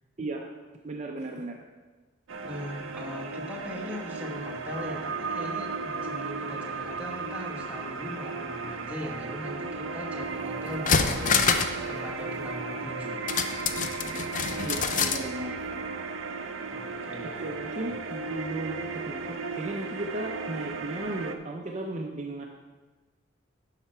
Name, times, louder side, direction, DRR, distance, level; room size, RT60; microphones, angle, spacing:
voice 1, 0.2-0.5 0.8-1.6 14.6-15.5 17.2-22.5, right 2 dB, 35° right, 1 dB, 0.6 m, -35 dB
sound 1, 2.3-21.4, right 4 dB, 85° right, 0.7 m, -35 dB
voice 2, 2.4-11.6 11.9-13.2 16.7-17.5, equal, 5° right, -2 dB, 1.2 m, -39 dB
sound 2, 10.2-10.3 10.7-11.8 12.1-12.2 13.3-15.3 15.6-15.7, left 5 dB, 40° left, 0.5 m, -26 dB
10.5 x 5.7 x 4.4 m, 1.3 s
head